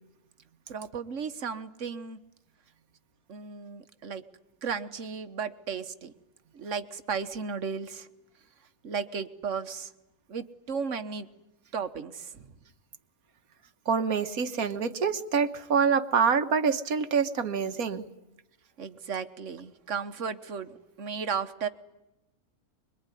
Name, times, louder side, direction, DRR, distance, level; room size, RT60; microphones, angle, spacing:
voice 1, 0.7-2.2 3.3-4.2 4.6-6.1 6.5-8.1 8.8-9.9 10.3-11.3 11.7-12.5 18.8-21.7, right 6 dB, 60° right, 10 dB, 1.5 m, -35 dB
voice 2, 13.9-18.0, right 6 dB, 85° right, 8 dB, 1.7 m, -26 dB
25.5 x 22.5 x 9.9 m, 0.98 s
omnidirectional pair, 1.5 m